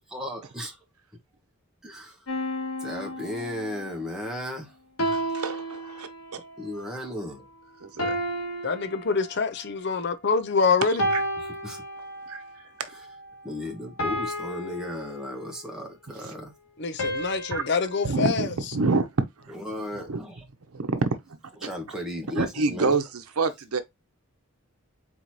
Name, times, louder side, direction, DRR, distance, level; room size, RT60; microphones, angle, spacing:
voice 1, 0.1-0.8 1.8-2.2 2.8-4.7 6.6-7.5 11.5-11.8 12.9-13.1 13.4-16.5 19.5-20.4 21.6-23.0, left 1 dB, 5° right, 1.3 m, -35 dB
sound 1, 2.3-3.9 5.0-6.5 8.0-9.7 11.0-12.5 14.0-15.7 17.0-18.0, equal, 75° left, 1.6 m, -32 dB
voice 2, 5.1-6.1 7.8-8.2 12.3-12.4 17.5-17.6 18.0-19.1 20.1-20.2 20.7-21.1 22.4-23.0 23.4-23.8, right 3 dB, 90° right, 0.8 m, -26 dB
voice 3, 8.6-11.1 16.8-18.5, left 4 dB, 50° left, 0.6 m, -25 dB
4.3 x 4.0 x 3.0 m
head